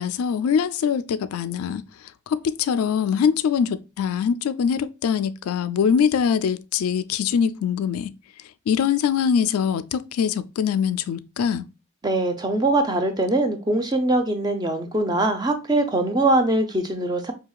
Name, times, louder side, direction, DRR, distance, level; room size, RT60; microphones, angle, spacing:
voice 1, 0.0-1.8 2.3-8.1 8.7-11.7, left 7 dB, 90° left, 0.3 m, -23 dB
voice 2, 12.0-17.3, right 2 dB, 20° right, 0.5 m, -22 dB
4.6 x 2.7 x 2.3 m
head